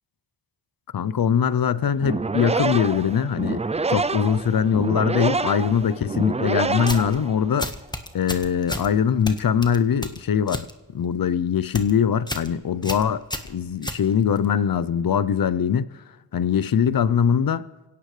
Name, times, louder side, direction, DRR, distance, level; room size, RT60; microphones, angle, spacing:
voice 1, 0.9-3.6 3.9-7.7 8.1-10.7 10.9-13.2 13.5-15.9 16.3-17.7, left 7 dB, 50° left, 0.7 m, -22 dB
sound 1, 1.9-7.7, right 3 dB, 15° right, 0.4 m, -27 dB
sound 2, 6.8-7.2 7.6-8.9 9.3-10.7 11.0-11.3 11.6-11.9 12.3-12.5 12.8-14.5, left 1 dB, 10° left, 1.4 m, -32 dB
24.5 x 17.0 x 3.3 m
cardioid pair, 50°, 44 cm